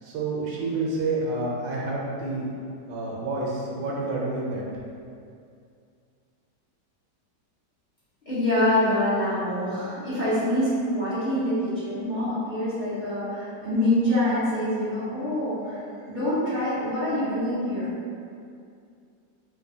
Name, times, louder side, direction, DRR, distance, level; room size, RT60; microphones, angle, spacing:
voice 1, 0.0-2.5 2.9-4.6, right 2 dB, 85° right, -4 dB, 1.4 m, -29 dB
voice 2, 8.3-15.8 16.1-17.9, left 1 dB, 35° left, -13 dB, 0.9 m, -25 dB
3.9 x 2.6 x 2.7 m, 2.4 s
omnidirectional pair, 1.9 m